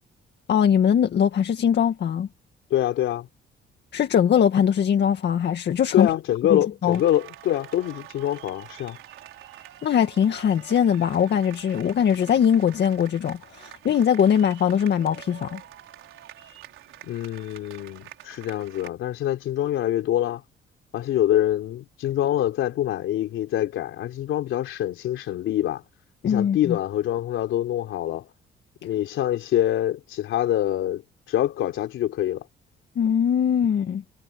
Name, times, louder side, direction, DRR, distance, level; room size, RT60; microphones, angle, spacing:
voice 1, 0.5-2.3 3.9-6.1 6.5-7.0 9.8-15.6 26.2-26.8 33.0-34.0, left 8 dB, 60° left, 2.0 m, -21 dB
voice 2, 2.7-3.3 5.9-9.0 17.0-20.4 20.9-25.8 26.2-28.3 28.8-31.0 31.3-32.4, left 12 dB, 80° left, 3.8 m, -25 dB
sound 1, 6.9-18.9, right 13 dB, 85° right, 4.5 m, -46 dB
cardioid pair, 90°, 20 cm